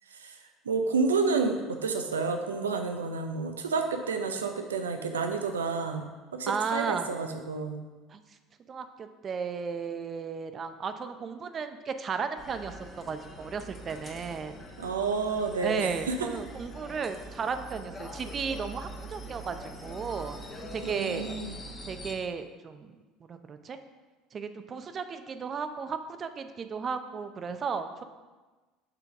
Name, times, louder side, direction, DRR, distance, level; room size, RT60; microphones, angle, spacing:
voice 1, 0.6-6.0 6.3-7.8 14.8-16.3 20.8-21.6, right 4 dB, 90° right, 5 dB, 0.5 m, -30 dB
voice 2, 6.5-7.1 8.1-8.2 8.7-14.6 15.6-20.4 20.7-21.3 21.9-23.8 24.3-28.0, right 5 dB, 40° right, 9 dB, 0.6 m, -34 dB
sound 1, 12.4-22.1, equal, 25° left, 1.2 m, -43 dB
5.9 x 3.8 x 5.8 m, 1.3 s
hypercardioid pair, 70°, 0 cm